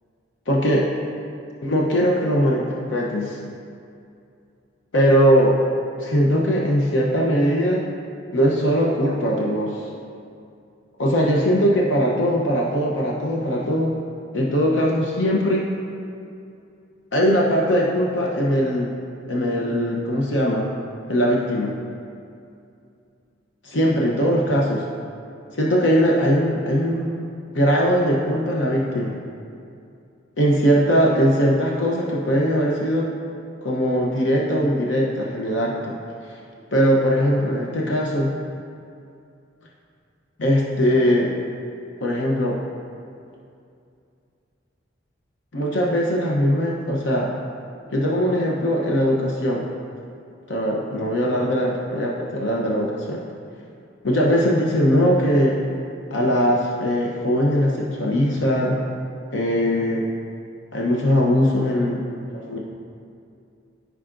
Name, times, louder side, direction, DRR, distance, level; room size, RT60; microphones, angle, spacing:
voice 1, 0.5-0.9 1.6-3.4 4.9-5.6 6.0-7.8 8.3-9.8 11.0-13.9 14.3-15.7 17.1-18.9 19.3-20.7 21.1-21.7 23.6-24.8 25.5-27.2 27.5-29.2 30.4-33.1 33.6-35.9 36.7-38.3 40.4-41.3 42.0-42.6 45.5-47.3 47.9-49.6 50.5-53.2 54.0-55.6 56.1-58.8 59.3-60.1 60.7-62.6, equal, 75° left, -3 dB, 0.8 m, -20 dB
14.5 x 4.9 x 2.6 m, 2.5 s
head